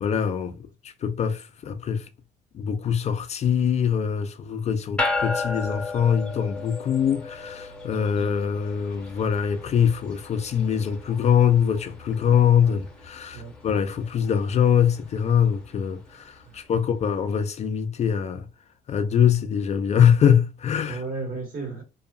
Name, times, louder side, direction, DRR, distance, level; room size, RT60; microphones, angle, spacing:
voice 1, 0.0-0.5 1.0-2.0 2.5-18.5 18.9-21.0, left 8 dB, 40° left, 0.4 m, -23 dB
sound 1, 5.0-16.6, left 3 dB, 5° left, 0.8 m, -35 dB
voice 2, 16.4-16.8 20.9-21.8, right 3 dB, 55° right, 1.5 m, -35 dB
2.6 x 2.3 x 2.3 m
cardioid pair, 110°, 17 cm